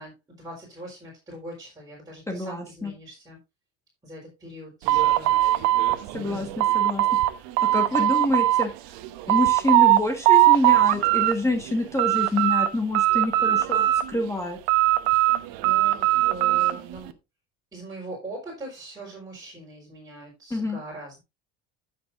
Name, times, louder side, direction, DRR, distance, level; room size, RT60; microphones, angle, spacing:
voice 1, 0.0-3.4 4.0-5.3 6.2-6.7 15.3-17.1 17.7-21.2, right 2 dB, 10° right, -4 dB, 4.3 m, -41 dB
voice 2, 2.3-2.9 6.1-7.0 7.7-8.7 9.3-14.6 20.5-20.8, left 2 dB, 10° left, 4 dB, 1.4 m, -27 dB
sound 1, 4.9-7.3 7.6-8.7 9.0-10.0 10.3-11.3 11.7-12.7 12.9-14.2 14.7-16.8, right 15 dB, 85° right, 1.1 m, -20 dB
15.0 x 6.7 x 2.6 m, 0.24 s
cardioid pair, 140°, 34 cm